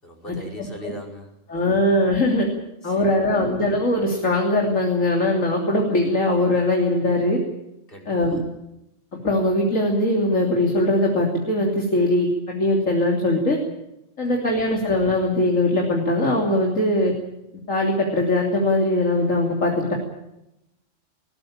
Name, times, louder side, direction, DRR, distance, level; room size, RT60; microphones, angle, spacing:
voice 1, 0.0-1.3 1.7-1.8 2.8-3.4 7.9-8.4 14.2-14.7, equal, 45° left, 2 dB, 5.4 m, -40 dB
voice 2, 1.5-2.5 2.8-7.4 8.1-8.4 9.2-13.6 14.2-17.1 17.7-19.9, left 1 dB, 85° left, 0 dB, 3.6 m, -21 dB
20.5 x 19.5 x 8.8 m, 0.87 s
omnidirectional pair, 1.3 m